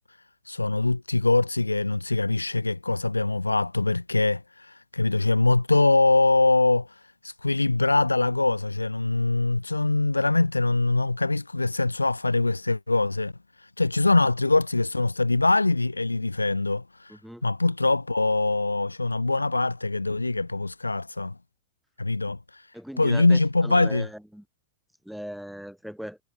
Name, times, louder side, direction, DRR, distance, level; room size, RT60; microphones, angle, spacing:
voice 1, 0.5-6.9 7.2-13.3 13.8-17.1 17.4-21.3 22.0-22.6 23.0-24.1, left 2 dB, 80° left, 1.1 m, -23 dB
voice 2, 17.1-17.4 22.7-24.4 25.1-26.2, equal, ahead, 4.1 m, -39 dB
figure-of-eight pair, 90°, 0 cm